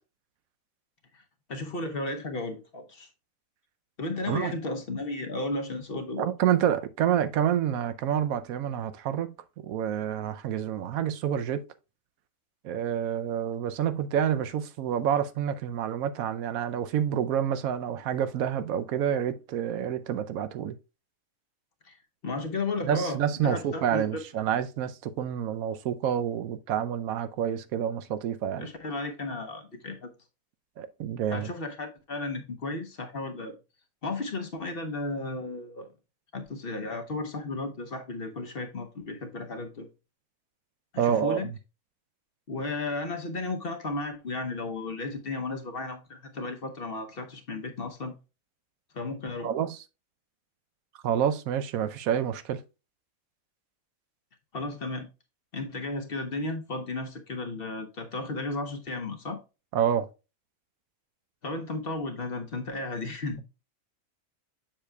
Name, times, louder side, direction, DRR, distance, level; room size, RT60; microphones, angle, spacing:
voice 1, 1.5-3.1 4.0-6.3 21.8-22.0 22.2-24.2 28.6-30.1 31.3-33.6 34.0-35.9 36.3-39.9 40.9-41.5 42.5-48.2 48.9-49.5 54.5-55.1 55.5-59.4 61.4-63.4, left 2 dB, 50° left, 0.9 m, -34 dB
voice 2, 6.2-9.3 9.6-11.6 12.6-20.8 22.9-28.7 30.8-31.5 41.0-41.4 49.4-49.8 51.0-52.6 59.7-60.1, right 9 dB, 85° right, 1.0 m, -28 dB
7.3 x 6.7 x 2.2 m
omnidirectional pair, 1.5 m